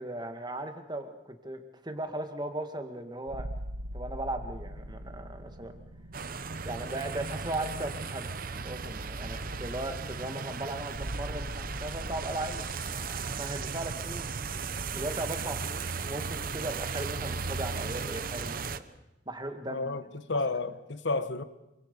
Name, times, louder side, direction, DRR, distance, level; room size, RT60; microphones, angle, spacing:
voice 1, 0.0-3.5 3.9-5.8 6.6-12.7 12.9-14.3 14.9-18.8 19.3-20.0, right 1 dB, 20° right, 1.7 m, -37 dB
sound 1, 3.3-18.5, equal, 80° right, 1.5 m, -43 dB
sound 2, 6.1-18.8, right 5 dB, 50° right, 0.9 m, -36 dB
voice 2, 19.7-21.4, left 3 dB, 65° left, 1.1 m, -31 dB
26.5 x 24.5 x 5.3 m
head